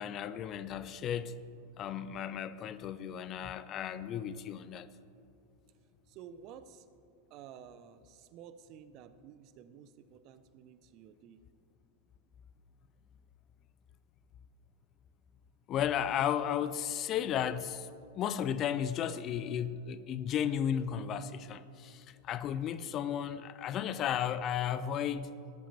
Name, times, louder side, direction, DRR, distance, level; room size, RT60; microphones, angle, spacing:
voice 1, 0.0-1.4 1.8-4.9 15.7-17.9 18.1-25.3, left 9 dB, 30° left, 0.4 m, -34 dB
voice 2, 6.1-6.9 7.3-11.4, right 8 dB, 40° right, 0.6 m, -52 dB
18.5 x 10.0 x 2.8 m
figure-of-eight pair, 90°, 0 cm